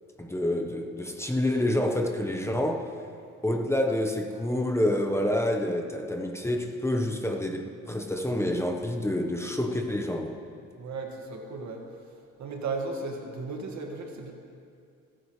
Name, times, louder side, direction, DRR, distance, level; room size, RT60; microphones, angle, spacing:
voice 1, 0.2-2.9 3.4-10.4, left 1 dB, 10° left, 3 dB, 1.1 m, -28 dB
voice 2, 10.8-11.8 12.4-14.3, right 3 dB, 65° right, 1 dB, 2.1 m, -35 dB
28.5 x 9.8 x 3.3 m, 2.4 s
cardioid pair, 90°, 30 cm